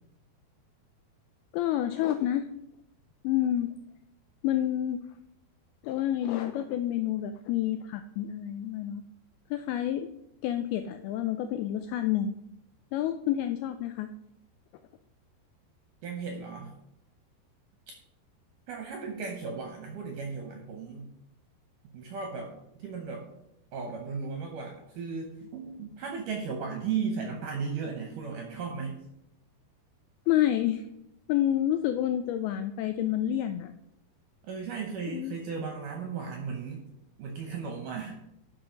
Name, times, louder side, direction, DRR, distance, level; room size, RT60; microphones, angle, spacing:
voice 1, 1.5-2.5 3.2-3.7 4.4-5.0 5.8-9.0 9.5-10.1 10.4-12.4 12.9-14.1 30.3-30.8 31.3-33.7 35.1-35.4, left 12 dB, 85° left, 8 dB, 2.2 m, -28 dB
voice 2, 16.0-16.7 18.7-21.1 21.9-23.3 23.7-29.0 34.4-36.8 37.2-38.2, right 5 dB, 75° right, 2 dB, 1.9 m, -36 dB
12.0 x 4.4 x 5.2 m, 0.82 s
omnidirectional pair, 4.9 m